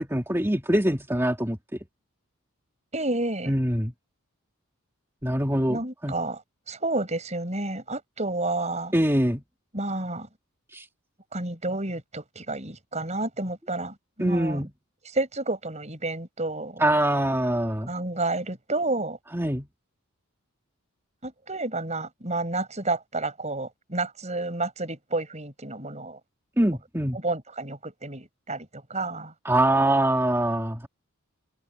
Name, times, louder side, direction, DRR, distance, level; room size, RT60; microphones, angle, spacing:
voice 1, 0.0-1.6 3.5-3.9 5.2-6.1 8.9-9.4 10.7-10.9 14.2-14.7 16.8-17.9 19.3-19.7 26.6-27.2 29.4-30.9, right 1 dB, 10° right, 2.8 m, -24 dB
voice 2, 2.9-3.5 5.7-6.4 6.7-8.9 9.7-10.3 11.3-14.6 15.1-16.8 17.9-19.2 21.2-26.2 27.1-29.3, right 2 dB, 30° right, 6.8 m, -30 dB
open air
head